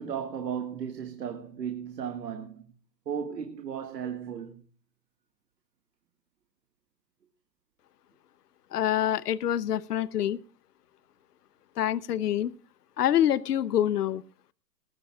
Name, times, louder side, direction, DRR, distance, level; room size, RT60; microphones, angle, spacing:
voice 1, 0.0-2.7 3.1-4.6, right 8 dB, 75° right, 2.0 m, -35 dB
voice 2, 8.7-10.4 11.8-12.5 13.0-14.2, left 11 dB, 65° left, 1.0 m, -26 dB
20.0 x 14.5 x 2.4 m
hypercardioid pair, 135°, 49 cm